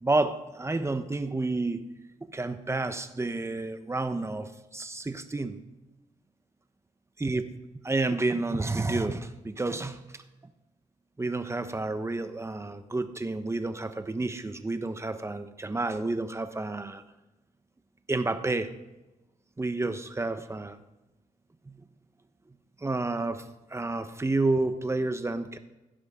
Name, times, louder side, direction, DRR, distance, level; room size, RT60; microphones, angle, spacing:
voice 1, 0.0-1.8 2.3-5.6 7.2-7.4 7.8-10.0 11.2-17.0 18.1-18.7 19.6-20.8 21.7-21.8 22.8-25.6, right 2 dB, 20° right, 9 dB, 1.0 m, -30 dB
15.5 x 11.0 x 3.7 m, 1.0 s
cardioid pair, 85°, 14 cm